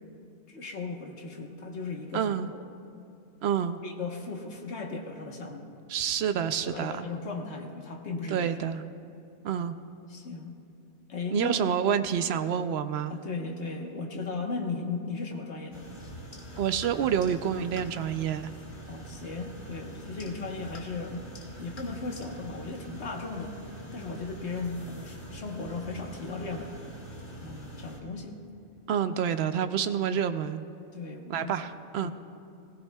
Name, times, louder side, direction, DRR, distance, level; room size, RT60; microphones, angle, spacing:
voice 1, 0.5-2.3 3.8-5.7 6.6-8.5 10.1-10.5 11.1-11.6 13.1-15.9 18.8-21.3 21.6-23.5 23.9-26.7 27.4-28.4 30.9-31.7 32.0-32.1, left 3 dB, 55° left, 2 dB, 1.5 m, -36 dB
voice 2, 2.1-2.5 3.4-3.8 5.9-7.1 8.3-8.8 9.4-9.7 11.3-13.1 16.6-18.5 28.9-30.6 31.3-32.1, right 8 dB, 65° right, 10 dB, 0.7 m, -28 dB
sound 1, 15.7-28.0, right 1 dB, 40° left, 1.5 m, -44 dB
19.5 x 17.0 x 2.3 m, 2.4 s
omnidirectional pair, 1.4 m